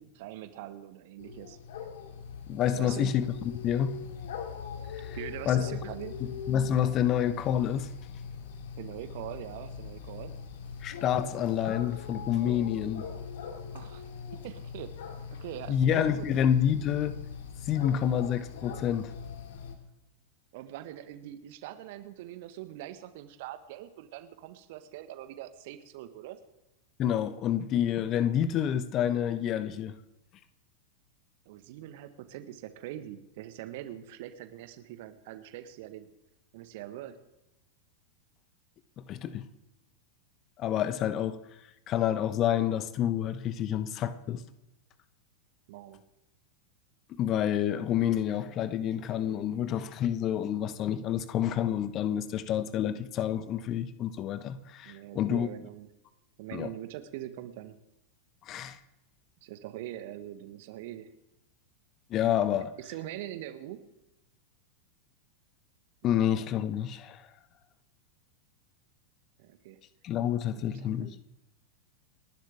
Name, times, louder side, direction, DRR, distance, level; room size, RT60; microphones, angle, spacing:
voice 1, 0.2-1.6 2.7-3.2 5.1-6.2 8.8-10.3 13.7-14.1 14.3-15.1 15.4-16.6 20.5-26.4 31.4-36.1 36.5-37.2 45.7-46.0 54.8-55.9 56.4-57.8 59.4-61.1 62.5-63.9 69.4-69.8 70.5-71.1, right 13 dB, 50° right, 1.4 m, -43 dB
sound 1, 1.2-19.7, left 6 dB, 55° left, 2.5 m, -41 dB
voice 2, 2.5-4.0 4.9-5.2 5.5-5.7 6.5-7.9 10.8-13.1 15.7-17.2 17.7-19.1 27.0-30.0 39.0-39.4 40.6-41.4 41.9-44.4 47.2-55.5 56.5-56.7 58.5-58.8 62.1-62.7 66.0-67.2 70.0-71.2, left 10 dB, 35° left, 1.0 m, -28 dB
29.5 x 11.5 x 3.5 m
figure-of-eight pair, 90°, 0 cm